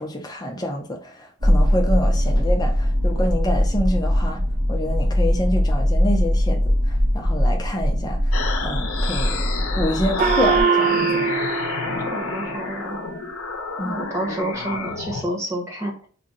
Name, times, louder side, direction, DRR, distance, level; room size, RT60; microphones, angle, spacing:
voice 1, 0.0-4.4 4.7-6.6 6.9-8.2 8.6-9.4 9.7-11.0 13.8-14.0, left 1 dB, 20° left, 0.6 m, -27 dB
sound 1, 1.4-10.6, equal, 70° right, 1.6 m, -21 dB
sound 2, 8.3-15.2, left 4 dB, 85° left, 0.7 m, -29 dB
Gong, 10.2-13.1, right 6 dB, 40° right, 0.3 m, -23 dB
voice 2, 12.1-13.0 13.8-16.1, right 1 dB, 15° right, 1.0 m, -29 dB
3.7 x 2.2 x 4.0 m
head